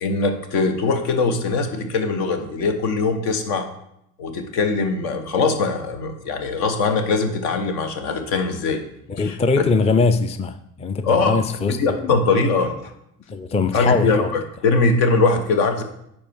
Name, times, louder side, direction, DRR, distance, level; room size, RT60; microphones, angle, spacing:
voice 1, 0.0-3.6 4.2-8.8 9.2-9.4 11.0-11.4 11.8-12.7 13.7-15.8, left 3 dB, 70° left, 1.4 m, -21 dB
voice 2, 9.1-12.2 13.3-14.3, left 4 dB, 15° left, 0.5 m, -22 dB
10.0 x 4.4 x 4.7 m
hypercardioid pair, 60°, 42 cm